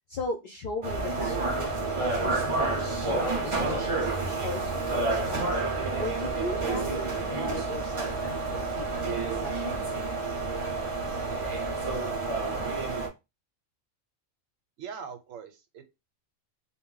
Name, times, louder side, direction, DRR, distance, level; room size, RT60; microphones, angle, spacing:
voice 1, 0.0-5.6 6.0-9.8, left 2 dB, 65° left, 0.5 m, -38 dB
sound 1, 0.8-13.1, right 3 dB, 40° right, 0.4 m, -29 dB
voice 2, 14.8-15.9, right 6 dB, 80° right, 1.0 m, -41 dB
2.2 x 2.0 x 3.7 m
omnidirectional pair, 1.3 m